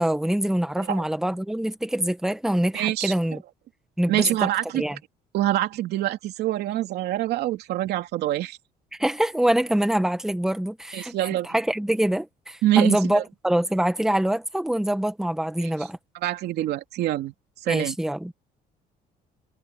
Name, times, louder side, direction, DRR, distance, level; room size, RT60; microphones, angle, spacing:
voice 1, 0.0-3.4 4.0-4.3 4.7-5.0 9.0-11.2 11.4-16.0 17.7-18.3, right 1 dB, 5° right, 1.6 m, -24 dB
voice 2, 2.7-3.1 4.1-4.8 5.3-8.6 10.9-11.6 12.6-13.2 15.6-15.7 16.2-17.3 17.6-18.0, right 14 dB, 75° right, 2.7 m, -25 dB
cardioid pair, 110°, 17 cm